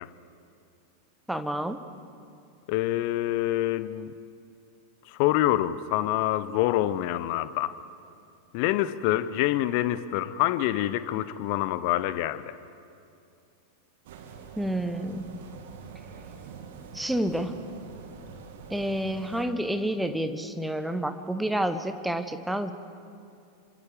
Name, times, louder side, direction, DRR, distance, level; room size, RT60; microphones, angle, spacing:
voice 1, 1.3-1.8 14.6-15.4 16.9-17.6 18.7-22.7, right 1 dB, 5° right, 9 dB, 1.3 m, -29 dB
voice 2, 2.7-4.1 5.2-7.7 8.5-12.4, left 14 dB, 45° left, 15 dB, 0.9 m, -26 dB
sound 1, 14.0-19.4, right 6 dB, 55° right, 2.4 m, -45 dB
28.0 x 25.0 x 5.0 m, 2.5 s
figure-of-eight pair, 90°, 0 cm